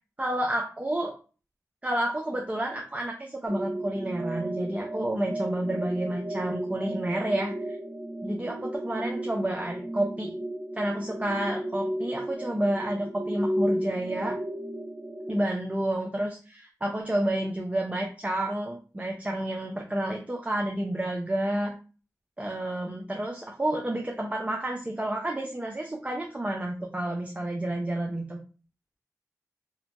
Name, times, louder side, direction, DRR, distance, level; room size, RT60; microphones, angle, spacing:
voice 1, 0.2-1.1 1.8-7.8 8.2-10.3 10.8-14.4 15.3-21.7 22.4-28.4, right 1 dB, 20° right, 1 dB, 0.5 m, -30 dB
sound 1, 3.5-15.4, right 1 dB, 40° right, 1.0 m, -34 dB
2.8 x 2.1 x 2.5 m, 0.36 s
cardioid pair, 50°, 6 cm